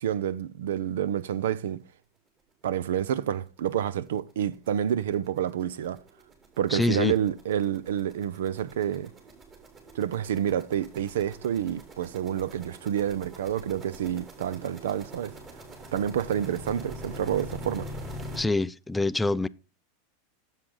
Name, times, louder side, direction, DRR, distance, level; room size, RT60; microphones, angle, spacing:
voice 1, 0.0-1.8 2.6-6.0 6.6-9.1 9.9-15.3 15.9-17.9, right 10 dB, 90° right, 0.6 m, -28 dB
sound 1, 3.0-3.1 3.5-3.6 3.8-18.4, equal, 30° right, 3.2 m, -44 dB
voice 2, 6.7-7.1 18.4-19.5, left 2 dB, 5° left, 0.3 m, -25 dB
9.8 x 7.5 x 3.8 m
supercardioid pair, 140°, 0 cm